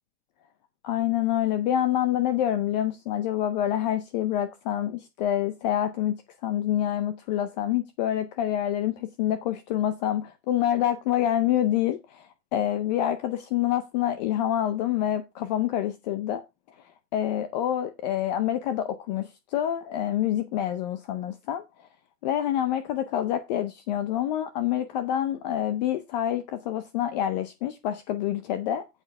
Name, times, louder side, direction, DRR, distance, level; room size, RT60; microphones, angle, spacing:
voice 1, 0.8-6.1 6.4-16.4 17.1-21.6 22.2-28.8, left 11 dB, 30° left, 0.6 m, -27 dB
8.8 x 8.2 x 3.5 m
hypercardioid pair, 150°, 47 cm